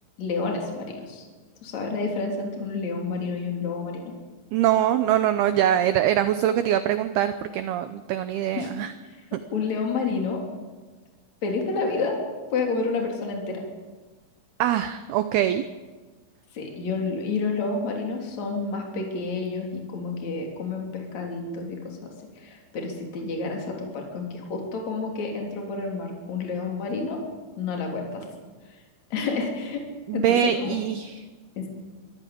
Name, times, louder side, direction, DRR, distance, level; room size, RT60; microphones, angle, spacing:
voice 1, 0.2-1.2 1.6-4.1 8.5-8.7 9.5-10.4 11.4-12.2 12.5-13.6 16.5-22.0 22.4-27.2 27.6-28.3 29.1-29.8 30.1-30.8 31.6-31.7, left 4 dB, 40° left, 1 dB, 4.1 m, -29 dB
voice 2, 4.5-8.9 14.6-15.6 30.1-31.2, right 11 dB, 80° right, 10 dB, 2.2 m, -23 dB
25.0 x 14.0 x 8.6 m, 1.3 s
omnidirectional pair, 5.5 m